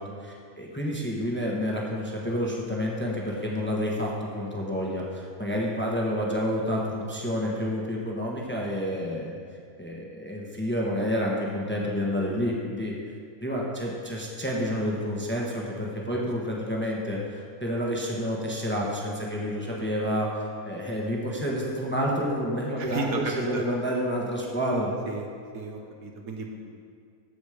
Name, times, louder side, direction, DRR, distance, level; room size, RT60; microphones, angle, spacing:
voice 1, 0.0-9.4 9.8-12.9 13.4-24.9, equal, 10° left, -3 dB, 1.1 m, -29 dB
voice 2, 22.8-23.6 25.1-25.3 25.5-26.7, right 3 dB, 75° right, 2 dB, 1.5 m, -33 dB
14.5 x 5.2 x 5.0 m, 2.3 s
omnidirectional pair, 1.5 m